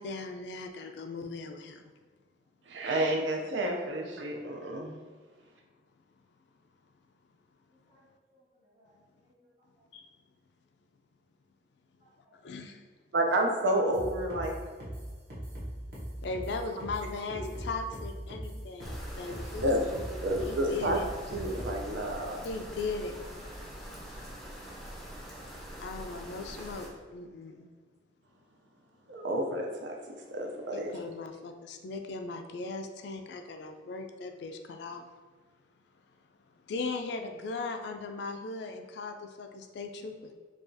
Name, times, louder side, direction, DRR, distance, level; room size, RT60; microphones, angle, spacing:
voice 1, 0.0-1.8 9.9-10.1 12.4-12.8 16.2-21.0 22.4-23.1 25.8-27.7 30.7-35.1 36.7-40.3, left 3 dB, 65° left, 5 dB, 0.3 m, -38 dB
voice 2, 2.7-5.0 13.1-14.5 19.6-19.8 20.2-21.0 21.3-22.4 29.1-30.0 30.3-30.9, right 1 dB, 80° right, 1 dB, 0.5 m, -30 dB
voice 3, 8.3-9.0 9.2-9.5 9.8-9.9 12.0-12.4 25.0-25.1 27.5-27.6, right 1 dB, 35° right, -7 dB, 1.3 m, -66 dB
sound 1, 13.9-21.8, equal, 50° right, 1.0 m, -40 dB
sound 2, 18.8-26.9, equal, ahead, 0.5 m, -44 dB
4.7 x 2.3 x 2.6 m, 1.5 s
head